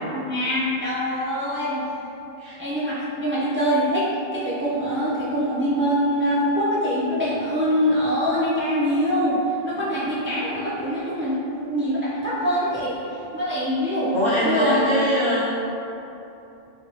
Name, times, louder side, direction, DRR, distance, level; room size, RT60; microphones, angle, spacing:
voice 1, 0.0-1.8 2.6-9.4 9.6-14.2 14.4-15.0, equal, 15° right, -9 dB, 0.4 m, -24 dB
voice 2, 14.1-15.5, equal, 35° left, -10 dB, 0.5 m, -22 dB
3.5 x 3.4 x 2.8 m, 2.9 s
omnidirectional pair, 1.1 m